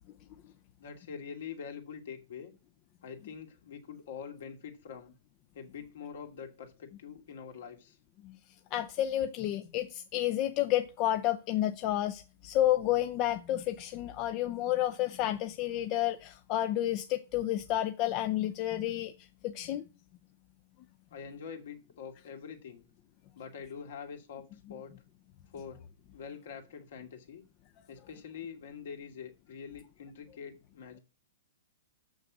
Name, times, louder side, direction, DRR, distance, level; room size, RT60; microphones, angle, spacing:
voice 1, 0.8-2.5 3.0-5.1 5.5-8.0 21.1-22.8 23.3-24.9 25.5-25.8 26.1-27.4 27.9-31.0, left 7 dB, 70° left, 2.5 m, -45 dB
voice 2, 8.7-19.1 19.4-19.8, left 13 dB, 40° left, 0.6 m, -30 dB
7.0 x 6.4 x 7.3 m
hypercardioid pair, 125°, 0 cm